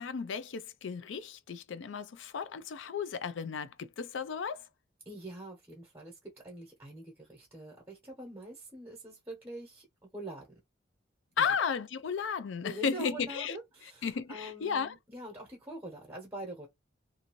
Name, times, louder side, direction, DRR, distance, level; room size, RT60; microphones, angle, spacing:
voice 1, 0.0-4.6 11.4-13.6 14.0-15.0, left 6 dB, 90° left, 0.4 m, -34 dB
voice 2, 5.0-10.6 11.4-11.5 12.6-16.7, right 1 dB, 10° right, 0.8 m, -45 dB
2.6 x 2.5 x 2.9 m
head